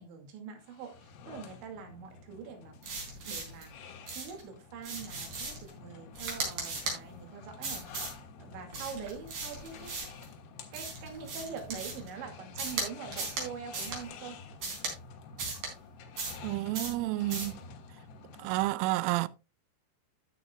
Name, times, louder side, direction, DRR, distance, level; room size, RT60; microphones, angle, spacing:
voice 1, 0.0-2.8 3.3-7.8 8.4-10.0 10.7-14.4 18.7-18.8, right 6 dB, 70° right, 4.5 m, -44 dB
sound 1, 0.6-18.7, left 4 dB, 65° left, 3.1 m, -49 dB
sound 2, 2.8-3.6 4.1-4.4 4.8-5.7 6.1-7.0 7.6-8.2 8.7-10.2 10.7-12.1 12.6-12.9 13.1-13.5 13.7-14.0 14.6-14.9 15.4-15.7 16.2-16.5 16.7-17.0 17.3-17.6, right 3 dB, 50° right, 5.4 m, -37 dB
voice 2, 16.4-17.6 18.4-19.3, right 18 dB, 85° right, 3.1 m, -30 dB
13.0 x 9.6 x 2.3 m
omnidirectional pair, 5.5 m